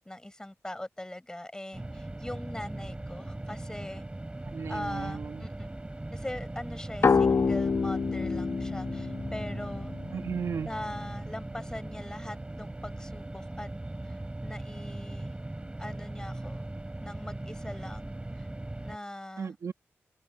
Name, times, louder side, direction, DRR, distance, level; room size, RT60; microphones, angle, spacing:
voice 1, 0.0-4.0 4.7-5.7 6.1-9.9 10.6-13.7 14.0-14.2 14.4-15.4 15.8-16.7 17.0-18.5 18.8-19.5, left 1 dB, 15° left, 6.2 m, -41 dB
sound 1, 1.7-19.0, right 2 dB, 20° right, 4.1 m, -39 dB
voice 2, 4.4-5.5 10.1-10.7 19.4-19.7, right 6 dB, 75° right, 1.5 m, -35 dB
sound 2, 7.0-10.5, left 5 dB, 55° left, 1.1 m, -27 dB
cardioid pair, 65°, 5 cm